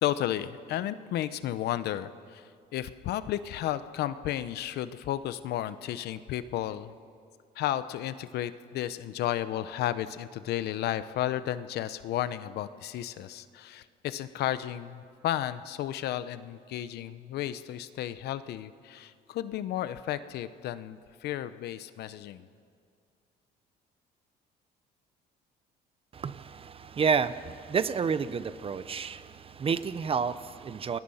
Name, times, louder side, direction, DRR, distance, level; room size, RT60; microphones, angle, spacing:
voice 1, 0.0-6.9 7.6-22.5, left 12 dB, 75° left, 13 dB, 1.0 m, -33 dB
voice 2, 26.1-31.0, right 6 dB, 35° right, 14 dB, 0.8 m, -30 dB
29.5 x 21.5 x 5.7 m, 2.3 s
cardioid pair, 110°, 17 cm